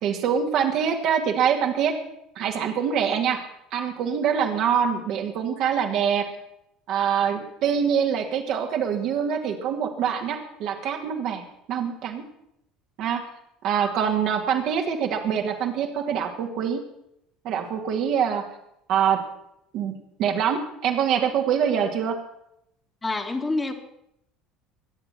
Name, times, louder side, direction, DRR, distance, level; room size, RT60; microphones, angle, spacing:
voice 1, 0.0-2.0 2.4-3.4 3.7-6.3 6.9-12.2 13.0-13.2 13.6-16.8 17.4-18.4 18.9-19.2 19.7-19.9 20.2-22.2, right 8 dB, 55° right, 3 dB, 2.5 m, -24 dB
voice 2, 23.0-23.7, left 2 dB, 20° left, 4 dB, 2.2 m, -26 dB
22.0 x 10.0 x 6.0 m, 0.77 s
figure-of-eight pair, 65°, 0 cm